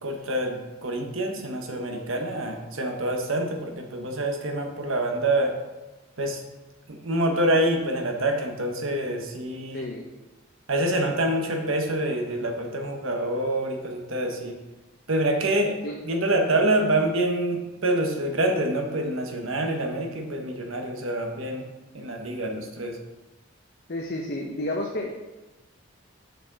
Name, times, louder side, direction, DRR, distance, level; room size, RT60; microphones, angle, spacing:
voice 1, 0.0-5.6 6.2-6.4 6.9-9.8 10.7-14.6 15.1-21.6 21.9-23.0, right 1 dB, 75° right, 3 dB, 1.1 m, -26 dB
voice 2, 9.7-10.0 15.8-15.9 23.9-25.1, left 1 dB, 50° left, 0 dB, 0.7 m, -30 dB
6.8 x 6.7 x 3.9 m, 1.1 s
head